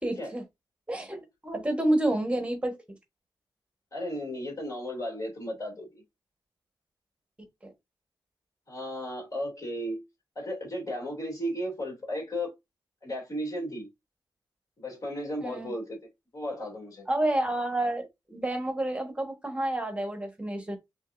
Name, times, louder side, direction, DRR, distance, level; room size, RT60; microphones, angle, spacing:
voice 1, 0.0-0.4 0.9-2.7 7.6-7.7 15.4-15.7 17.1-20.8, right 1 dB, 15° right, 1.3 m, -29 dB
voice 2, 3.9-6.0 8.7-10.0 10.3-12.5 13.0-13.9 14.8-16.0 16.3-17.1, equal, 40° left, 2.7 m, -34 dB
6.3 x 3.0 x 2.6 m
wide cardioid pair, 145°, 9 cm